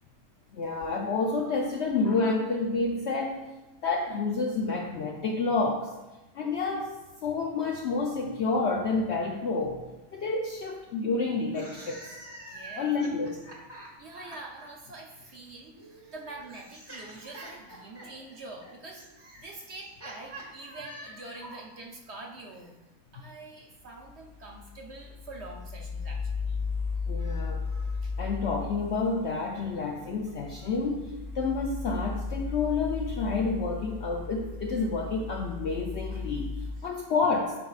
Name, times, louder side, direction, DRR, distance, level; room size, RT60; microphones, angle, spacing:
voice 1, 0.5-3.5 3.8-5.9 6.3-9.9 10.1-12.1 12.8-13.4 21.4-21.6 27.1-27.9 28.2-36.5 36.8-37.5, left 3 dB, 65° left, 1 dB, 0.6 m, -29 dB
sound 1, 11.4-14.7 15.7-21.6, right 1 dB, 20° right, 1.0 m, -46 dB
voice 2, 12.4-12.9 14.0-19.0 19.4-22.8 23.1-26.6 28.0-28.1, right 2 dB, 55° right, 0 dB, 0.8 m, -45 dB
sound 2, 23.8-36.7, left 4 dB, 25° left, 0.9 m, -36 dB
8.5 x 5.2 x 2.4 m, 1.0 s
omnidirectional pair, 1.6 m